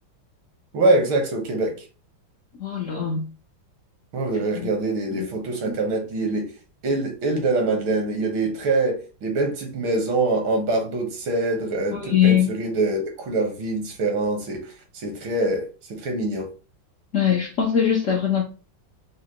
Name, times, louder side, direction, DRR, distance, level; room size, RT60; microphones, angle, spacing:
voice 1, 0.7-1.8 4.1-6.5 6.8-16.5, right 2 dB, 80° right, 1.8 m, -24 dB
voice 2, 2.6-3.2 4.5-4.7 5.1-5.3 11.9-12.5 17.1-18.4, left 9 dB, 80° left, 0.6 m, -21 dB
5.0 x 2.1 x 2.8 m
omnidirectional pair, 2.2 m